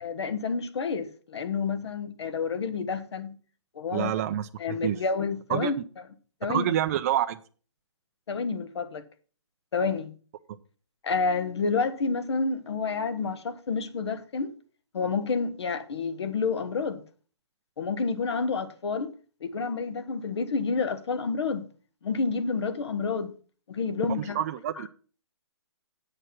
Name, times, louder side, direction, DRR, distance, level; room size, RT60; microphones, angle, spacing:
voice 1, 0.0-3.4 3.8-4.1 4.6-5.7 6.4-6.7 8.3-9.0 9.7-10.1 11.0-14.5 14.9-17.0 17.8-19.1 19.4-21.7 22.0-23.3 23.7-24.4, left 4 dB, 65° left, 1.2 m, -29 dB
voice 2, 3.9-5.0 5.5-5.8 6.5-7.4 24.1-24.9, right 11 dB, 30° right, 0.5 m, -28 dB
8.8 x 6.6 x 6.0 m
hypercardioid pair, 150°, 15 cm